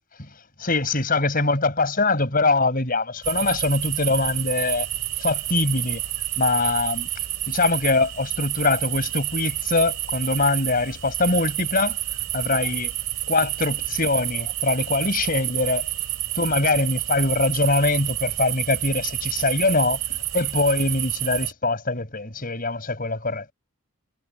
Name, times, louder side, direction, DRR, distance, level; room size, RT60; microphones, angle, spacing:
voice 1, 0.6-4.9 5.2-6.0 6.4-7.1 7.5-12.0 12.3-12.9 13.3-15.9 16.4-20.0 20.3-23.5, left 3 dB, 40° left, 5.8 m, -23 dB
sound 1, 3.2-21.5, right 14 dB, 60° right, 5.0 m, -29 dB
head